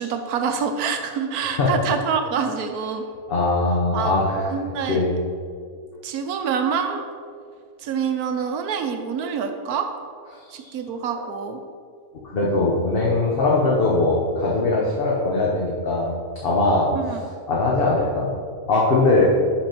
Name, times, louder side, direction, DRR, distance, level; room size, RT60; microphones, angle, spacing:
voice 1, 0.0-3.0 3.9-4.1 4.5-5.0 6.0-7.1 7.8-9.9 10.5-11.6 16.9-17.2, right 6 dB, 75° right, 6 dB, 1.2 m, -26 dB
voice 2, 3.3-4.4 4.9-5.1 10.3-10.7 12.3-16.1 16.4-16.9 17.5-18.3 18.7-19.2, left 2 dB, 40° left, -4 dB, 1.0 m, -21 dB
6.0 x 5.2 x 5.8 m, 2.1 s
omnidirectional pair, 1.6 m